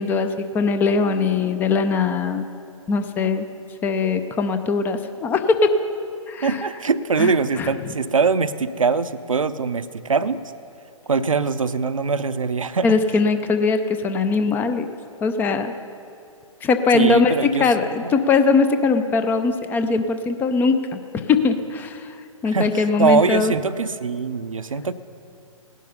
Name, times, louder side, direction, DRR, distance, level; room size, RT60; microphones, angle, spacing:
voice 1, 0.0-2.5 2.9-3.5 3.8-5.7 6.3-6.6 7.2-7.7 12.8-14.9 15.2-15.7 16.6-21.0 21.3-22.2 22.4-23.5, left 4 dB, 10° left, 9 dB, 0.5 m, -21 dB
voice 2, 6.4-10.4 11.1-12.9 16.9-17.7 18.0-18.1 22.5-24.9, right 5 dB, 75° right, 13 dB, 0.6 m, -22 dB
17.5 x 11.0 x 5.5 m, 2.6 s
figure-of-eight pair, 125°, 17 cm